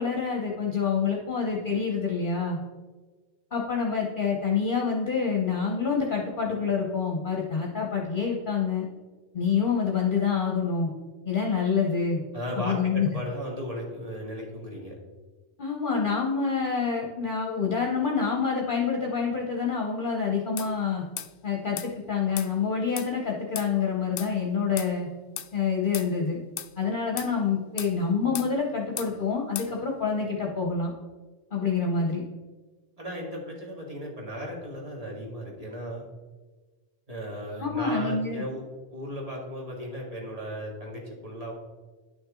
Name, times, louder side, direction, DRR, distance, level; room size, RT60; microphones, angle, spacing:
voice 1, 0.0-2.6 3.5-8.9 9.3-10.9 11.3-12.2 12.6-13.1 15.6-21.0 21.4-25.1 25.5-26.4 26.8-30.9 31.5-32.2 37.6-38.4, left 5 dB, 45° left, -1 dB, 1.1 m, -27 dB
voice 2, 12.3-15.0 33.0-36.1 37.1-38.7 38.9-41.5, equal, 30° right, -1 dB, 2.0 m, -36 dB
sound 1, 20.6-20.7 21.2-21.3 21.8-21.9 22.4-22.5 23.0-23.1 23.6-23.7 24.2-24.3 24.8-24.9 25.4-25.5 25.9-26.1 26.6-26.7 27.2-27.3 27.8-27.9 28.3-28.5 29.0-29.1 29.6-29.7, left 11 dB, 70° left, 0.9 m, -35 dB
10.5 x 6.0 x 3.8 m, 1.3 s
omnidirectional pair, 1.3 m